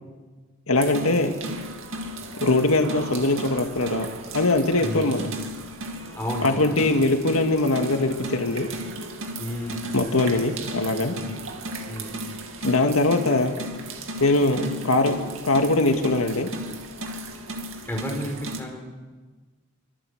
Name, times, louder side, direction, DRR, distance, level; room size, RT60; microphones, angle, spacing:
voice 1, 0.7-1.4 2.4-4.1 4.3-5.3 6.4-8.7 9.9-11.1 12.6-13.5 14.2-15.2 15.4-16.5, left 2 dB, 80° left, 5 dB, 2.0 m, -21 dB
sound 1, 0.7-18.6, right 1 dB, 65° right, 2.5 m, -35 dB
voice 2, 4.8-5.1 6.2-6.7 9.4-10.1 11.2-11.4 11.8-12.1 17.9-18.9, equal, 10° left, 0 dB, 4.6 m, -32 dB
24.5 x 23.5 x 8.0 m, 1.4 s
head